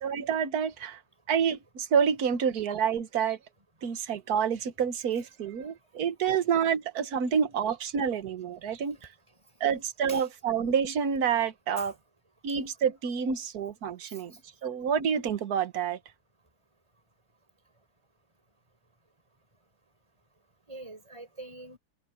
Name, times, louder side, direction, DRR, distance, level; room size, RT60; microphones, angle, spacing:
voice 1, 0.0-1.0 1.3-3.4 3.8-9.0 9.6-11.9 12.4-14.3 14.6-16.0, right 7 dB, 50° right, 1.6 m, -28 dB
voice 2, 20.7-21.8, right 2 dB, 15° right, 5.9 m, -44 dB
omnidirectional pair, 2.4 m